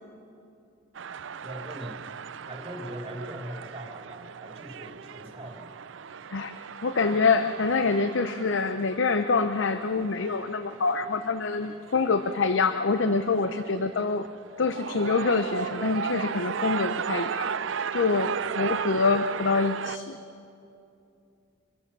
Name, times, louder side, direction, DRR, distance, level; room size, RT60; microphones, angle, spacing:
sound 1, 0.9-20.0, right 6 dB, 70° right, 0.5 m, -36 dB
voice 1, 1.4-2.1 2.5-5.7 18.3-18.6, equal, 25° right, 1 dB, 2.5 m, -41 dB
voice 2, 6.8-14.2 14.6-17.5 17.9-20.2, left 4 dB, 70° left, 9 dB, 0.6 m, -25 dB
24.5 x 15.5 x 6.9 m, 2.7 s
head